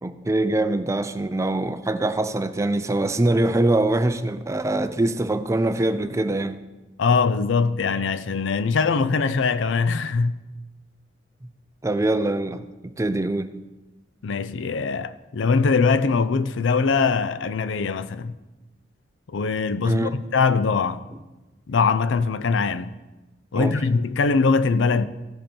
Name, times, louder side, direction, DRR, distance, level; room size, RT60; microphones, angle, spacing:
voice 1, 0.0-6.6 11.4-11.5 11.8-13.6 19.8-20.2 23.5-23.7, right 2 dB, 15° right, 0.4 m, -23 dB
voice 2, 7.0-10.3 14.2-18.4 19.3-21.0 21.7-22.9 23.5-25.1, left 4 dB, 75° left, 0.5 m, -22 dB
15.0 x 5.3 x 4.4 m
head